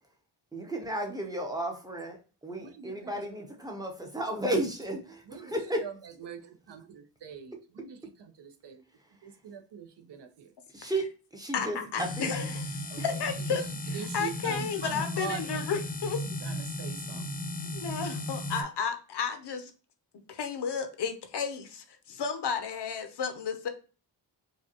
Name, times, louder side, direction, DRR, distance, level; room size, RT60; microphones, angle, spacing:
voice 1, 0.5-2.2 2.4-5.8 10.7-12.3, right 1 dB, 10° right, 0.7 m, -33 dB
voice 2, 2.5-3.2 5.2-8.8 9.2-10.5 12.9-13.2 13.5-15.7 16.0-17.3, right 7 dB, 65° right, 0.7 m, -44 dB
voice 3, 11.5-13.6 14.1-16.2 17.6-19.7 20.3-23.7, left 6 dB, 60° left, 0.7 m, -33 dB
sound 1, 12.0-18.6, left 1 dB, 20° left, 0.4 m, -35 dB
4.9 x 2.3 x 2.9 m
wide cardioid pair, 165°, 45 cm